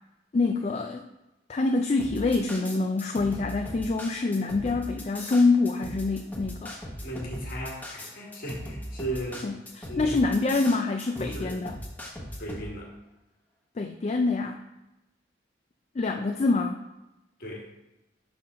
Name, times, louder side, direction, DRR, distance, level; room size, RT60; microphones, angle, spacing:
voice 1, 0.3-1.1 1.5-6.7 9.4-11.8 13.8-14.6 16.0-16.8, left 3 dB, 35° left, 4 dB, 0.3 m, -26 dB
sound 1, 2.0-12.7, equal, 10° left, 0.9 m, -39 dB
voice 2, 7.0-9.5 9.8-10.2 11.2-11.6 12.4-12.9 17.4-17.7, right 1 dB, 50° left, -3 dB, 1.6 m, -36 dB
5.8 x 3.8 x 5.3 m, 0.97 s
head